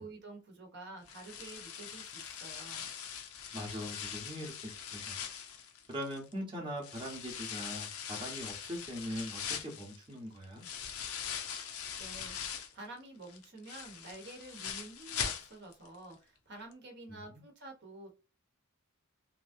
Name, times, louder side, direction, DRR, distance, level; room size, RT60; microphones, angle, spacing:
voice 1, 0.0-2.9 12.0-18.1, right 2 dB, 55° right, 1.0 m, -49 dB
sound 1, 1.1-6.3 6.8-12.8 13.2-15.9 16.1-16.2 16.7-16.8, left 8 dB, 80° left, 0.7 m, -42 dB
voice 2, 3.5-5.2 5.9-10.6 17.1-17.4, equal, 25° right, 1.0 m, -41 dB
2.9 x 2.6 x 2.6 m
head